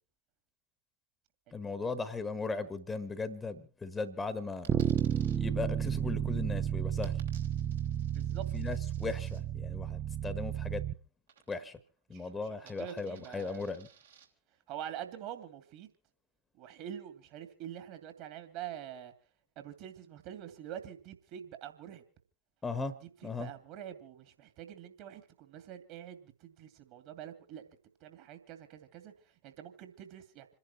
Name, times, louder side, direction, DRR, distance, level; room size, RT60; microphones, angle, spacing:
voice 1, 1.5-4.8 5.4-7.2 8.5-10.8 11.5-11.8 12.1-13.9 22.6-22.9 23.2-23.5, left 4 dB, 15° left, 1.4 m, -37 dB
Coin (dropping), 4.6-5.4 7.0-9.4 11.3-11.9 12.2-14.3, right 8 dB, 65° right, 3.1 m, -59 dB
Bass guitar, 4.7-10.9, right 9 dB, 25° right, 0.7 m, -32 dB
voice 2, 8.1-8.4 12.1-13.7 14.7-15.9 16.6-19.1 19.6-22.0 23.0-27.7 28.0-29.1 29.4-30.5, right 10 dB, 45° right, 2.6 m, -46 dB
27.5 x 10.5 x 4.4 m
figure-of-eight pair, 90°, 0 cm